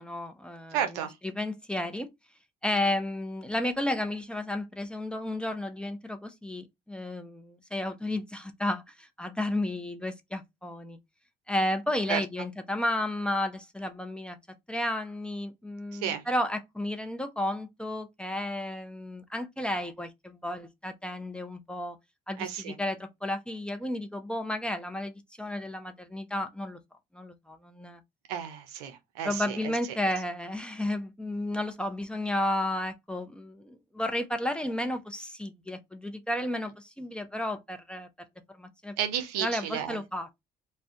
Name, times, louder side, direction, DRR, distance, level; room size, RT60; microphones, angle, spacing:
voice 1, 0.0-2.1 2.6-11.0 11.5-14.4 14.7-22.0 22.3-26.8 27.1-28.0 29.2-38.1 38.5-38.9 39.4-40.4, left 1 dB, 5° left, 0.6 m, -32 dB
voice 2, 0.7-1.2 12.1-12.2 15.9-16.2 22.4-22.8 28.3-30.0 39.0-40.0, right 9 dB, 85° right, 0.6 m, -32 dB
2.5 x 2.2 x 3.5 m
hypercardioid pair, 65°, 19 cm